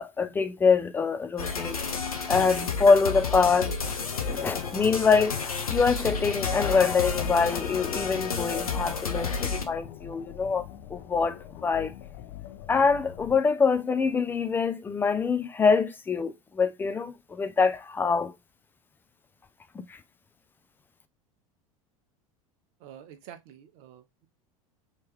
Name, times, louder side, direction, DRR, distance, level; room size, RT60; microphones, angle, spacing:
voice 1, 0.0-1.8 2.3-3.7 4.3-5.4 5.7-10.6 10.9-11.3 11.6-11.9 12.7-18.3 19.9-20.0, left 5 dB, 10° left, 0.4 m, -24 dB
sound 1, 1.4-9.6, left 5 dB, 80° left, 0.6 m, -31 dB
sound 2, 7.7-13.4, left 12 dB, 50° left, 1.0 m, -44 dB
voice 2, 22.8-24.3, right 10 dB, 50° right, 0.7 m, -48 dB
3.2 x 2.9 x 3.3 m
figure-of-eight pair, 80°, 18 cm